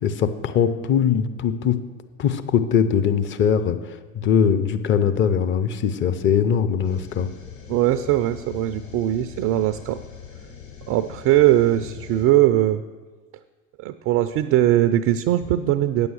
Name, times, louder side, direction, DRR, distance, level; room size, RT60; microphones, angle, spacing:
voice 1, 0.0-1.8 2.2-3.8 4.1-7.3, left 7 dB, 30° left, 11 dB, 0.6 m, -21 dB
sound 1, 6.8-12.2, left 7 dB, 65° left, 3.9 m, -41 dB
voice 2, 7.7-10.0 10.9-12.8 13.8-16.1, right 13 dB, 40° right, 10 dB, 0.4 m, -20 dB
9.2 x 6.9 x 6.3 m, 1.4 s
hypercardioid pair, 80°, 41 cm